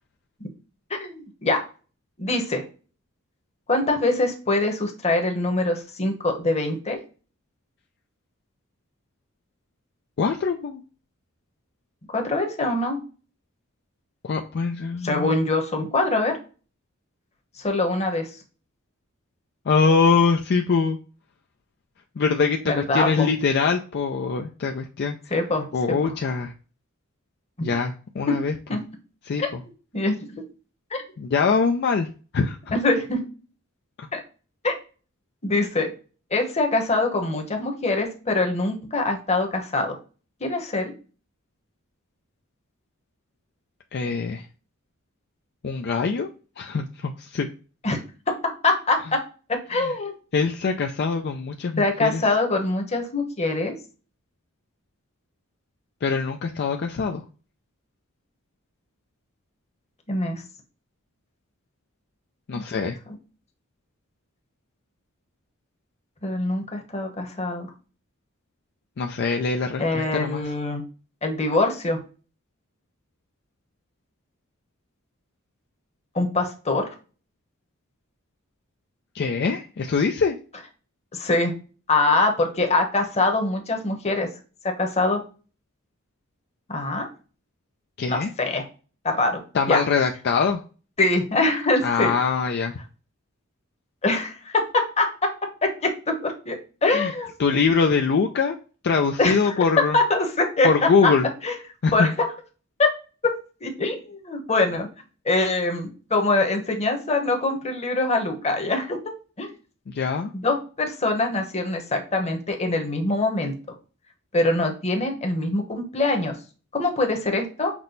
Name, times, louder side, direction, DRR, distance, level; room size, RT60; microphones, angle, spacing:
voice 1, 0.9-1.6 2.2-2.6 3.7-7.0 12.1-13.0 15.0-16.3 17.6-18.3 22.6-23.3 25.3-26.1 27.6-27.7 28.3-28.4 28.7-28.8 29.4-29.5 29.9-30.4 30.9-31.0 32.7-33.2 34.1-34.2 34.6-34.7 35.4-35.9 36.3-39.9 40.4-40.9 47.8-48.0 48.4-49.2 49.5-50.1 51.8-53.7 60.1-60.4 62.5-62.6 66.2-67.7 69.8-70.8 71.2-72.0 76.1-76.9 81.1-81.5 81.9-84.3 84.6-85.2 86.7-87.1 88.1-88.6 89.0-89.4 89.7-89.8 91.0-92.1 94.0-95.3 95.6-95.9 96.2-96.6 96.8-97.3 99.2-99.5 99.9-100.7 101.4-101.5 101.9-102.1 102.8-102.9 103.6-104.9 105.2-109.0 109.4-109.5 110.3-113.5 114.3-116.4 116.7-117.7, left 2 dB, 30° left, 4 dB, 1.0 m, -23 dB
voice 2, 10.2-10.8 14.2-15.4 19.7-21.0 22.2-25.2 25.7-26.5 27.6-28.5 29.3-29.6 31.2-32.1 32.3-32.6 34.0-34.1 43.9-44.5 45.6-46.3 46.6-47.5 49.7-49.9 50.3-52.2 56.0-57.2 62.5-63.0 69.0-70.4 79.1-80.4 88.0-88.3 89.5-90.6 91.8-92.7 96.9-97.1 97.4-98.6 98.8-100.0 100.6-101.3 101.8-102.1 109.9-110.3, left 5 dB, 50° left, 3 dB, 0.4 m, -23 dB
6.0 x 2.1 x 3.9 m, 0.36 s
head